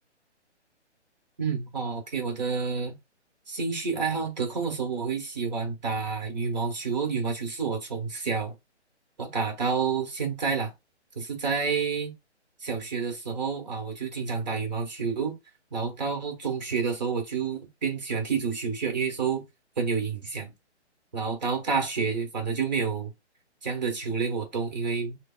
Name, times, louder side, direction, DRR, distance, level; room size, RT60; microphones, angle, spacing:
voice 1, 1.4-2.9 3.5-8.6 9.2-10.7 11.1-12.1 12.6-15.3 15.7-19.4 19.8-20.5 21.1-23.1 23.6-25.2, right 5 dB, 40° right, 1.3 m, -29 dB
6.2 x 2.1 x 2.4 m
hypercardioid pair, 175°, 35 cm